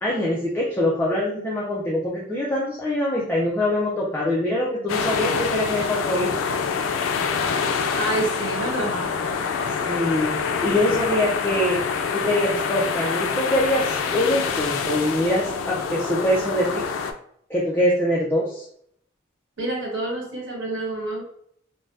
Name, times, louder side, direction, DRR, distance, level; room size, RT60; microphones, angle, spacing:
voice 1, 0.0-6.4 9.9-11.8 12.1-16.8 17.5-18.6, left 1 dB, 10° left, -6 dB, 0.4 m, -23 dB
sound 1, 4.9-17.1, left 5 dB, 90° left, 0.3 m, -26 dB
voice 2, 7.9-9.1 19.6-21.2, right 2 dB, 80° right, -3 dB, 1.3 m, -28 dB
2.5 x 2.1 x 3.3 m, 0.66 s
head